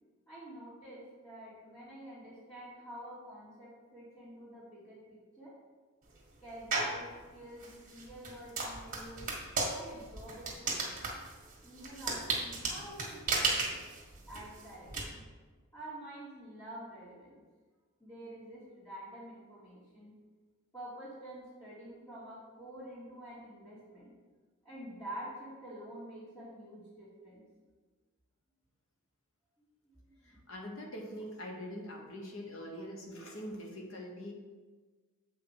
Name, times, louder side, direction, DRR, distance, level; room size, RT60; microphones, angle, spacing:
voice 1, 0.3-5.6 6.4-9.3 9.7-11.0 11.6-13.8 14.3-15.2 15.7-17.4 18.0-20.1 20.7-24.1 24.6-27.4 29.6-29.7 30.0-30.4, right 1 dB, 20° left, -12 dB, 2.5 m, -48 dB
sound 1, 6.7-7.0 7.6-15.0, right 3 dB, 40° right, 1.7 m, -34 dB
voice 2, 30.2-34.3, equal, 65° left, 1 dB, 1.3 m, -43 dB
7.7 x 5.3 x 4.8 m, 1.4 s
head